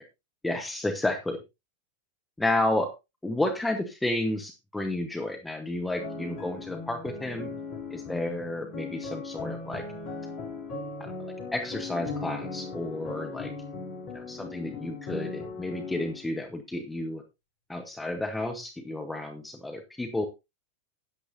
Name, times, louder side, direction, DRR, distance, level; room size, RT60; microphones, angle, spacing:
voice 1, 0.4-1.4 2.4-2.9 3.2-7.5 7.9-9.8 11.0-11.1 11.5-13.5 14.1-17.2 17.7-20.3, left 1 dB, 5° left, 5 dB, 1.2 m, -31 dB
sound 1, 6.0-16.3, left 4 dB, 50° left, 3.3 m, -38 dB
13.5 x 10.0 x 2.7 m, 0.24 s
figure-of-eight pair, 90°, 0 cm